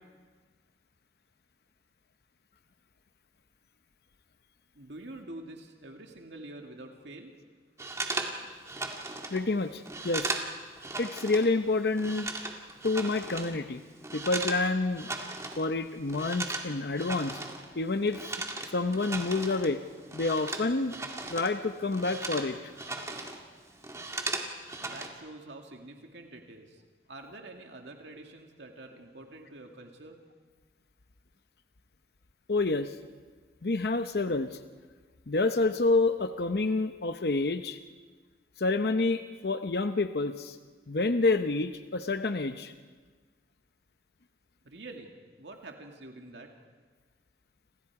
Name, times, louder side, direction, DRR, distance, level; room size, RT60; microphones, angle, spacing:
voice 1, 4.7-7.4 24.8-26.8 27.1-30.2 44.6-46.5, right 2 dB, 85° right, 2 dB, 2.3 m, -46 dB
sound 1, 7.8-11.5 11.8-14.7 14.9-15.7 15.9-21.6 21.8-23.4 23.7-25.1, right 2 dB, 15° right, 2.0 m, -37 dB
voice 2, 9.3-10.3 11.0-12.3 12.8-13.8 14.1-15.1 15.6-17.4 17.8-18.3 18.7-19.8 20.1-20.9 21.3-22.6 32.5-33.0 33.6-34.6 35.3-37.8 38.6-40.6 40.9-42.7, left 3 dB, 60° left, 8 dB, 0.8 m, -28 dB
30.0 x 27.0 x 4.8 m, 1.5 s
head